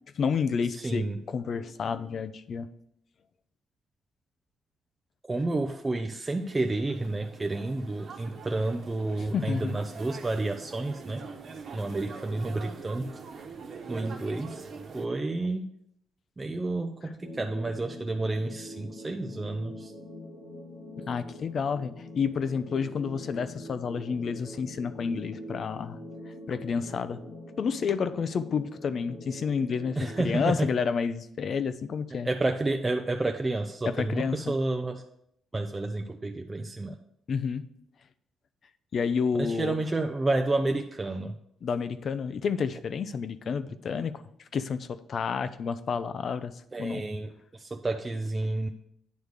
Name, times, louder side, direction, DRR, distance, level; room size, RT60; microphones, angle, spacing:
voice 1, 0.1-2.7 9.2-9.8 21.1-26.0 26.5-27.2 27.6-32.3 33.9-34.5 37.3-37.6 38.9-39.7 41.6-44.2 44.5-46.5 46.8-47.0, left 6 dB, 55° left, 12 dB, 0.6 m, -30 dB
voice 2, 0.7-1.2 5.3-11.3 11.7-13.1 13.9-14.6 14.9-15.7 16.4-19.9 30.0-30.7 32.2-35.0 35.5-37.0 39.3-41.4 46.7-48.7, right 2 dB, 20° right, 4 dB, 0.5 m, -30 dB
sound 1, 6.3-15.1, right 5 dB, 60° right, 1.2 m, -43 dB
sound 2, 17.2-30.3, left 1 dB, 85° left, 3.3 m, -44 dB
9.3 x 3.5 x 6.5 m, 0.74 s
cardioid pair, 90°, 0 cm